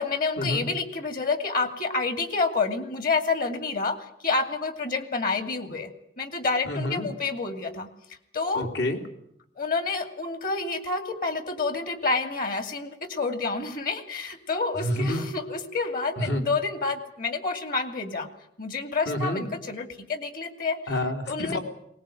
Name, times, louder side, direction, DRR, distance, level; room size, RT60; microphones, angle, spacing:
voice 1, 0.0-4.0 4.2-5.9 6.2-7.9 8.3-8.7 9.6-18.3 18.6-20.8 21.3-21.6, left 4 dB, 55° left, 9 dB, 2.5 m, -28 dB
voice 2, 6.6-7.1 8.5-9.0 14.8-15.2 16.2-16.4 19.0-19.4 20.9-21.6, left 1 dB, 75° left, 3 dB, 3.4 m, -28 dB
20.5 x 18.5 x 9.2 m, 0.73 s
head